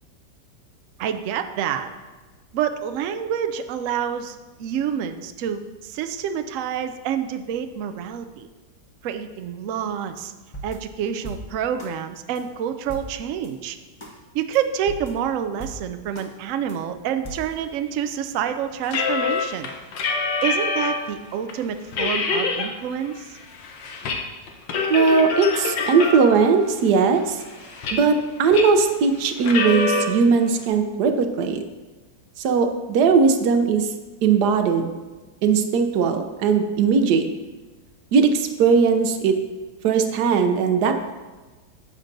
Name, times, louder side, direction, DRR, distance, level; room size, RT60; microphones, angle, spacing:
voice 1, 1.0-1.9 2.5-8.5 9.0-10.3 10.6-13.8 14.3-19.7 20.4-23.4, right 8 dB, 85° right, 8 dB, 0.7 m, -28 dB
sound 1, 10.2-10.3 10.5-12.0 12.4-12.5 12.9-13.5 14.0-14.2 14.5-14.6 14.9-16.3 16.7-16.8 17.2-18.4, right 1 dB, 25° left, 0.7 m, -40 dB
sound 2, 18.9-21.1 21.5-21.6 21.9-22.7 23.1-24.2 24.5-26.5 27.1-28.2 28.5-28.8 29.4-30.1, left 4 dB, 85° left, 1.5 m, -25 dB
voice 2, 24.9-27.4 27.9-31.6 32.4-33.9 34.2-34.9 35.4-37.2 38.1-39.4 39.8-41.0, right 5 dB, 70° right, 7 dB, 1.2 m, -19 dB
9.6 x 7.5 x 2.6 m, 1.2 s
omnidirectional pair, 1.9 m